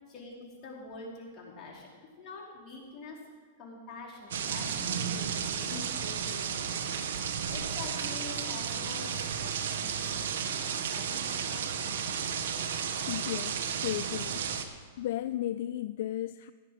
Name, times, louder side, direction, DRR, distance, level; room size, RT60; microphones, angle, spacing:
voice 1, 0.1-3.2 3.6-5.3 5.6-6.7 7.1-7.2 7.5-12.0, left 3 dB, 35° left, -4 dB, 4.7 m, -46 dB
sound 1, 4.3-14.7, right 7 dB, 75° right, 1.2 m, -33 dB
voice 2, 13.1-14.6 15.0-16.5, left 13 dB, 60° left, 14 dB, 0.3 m, -35 dB
16.5 x 10.0 x 5.1 m, 1.5 s
hypercardioid pair, 115°, 0 cm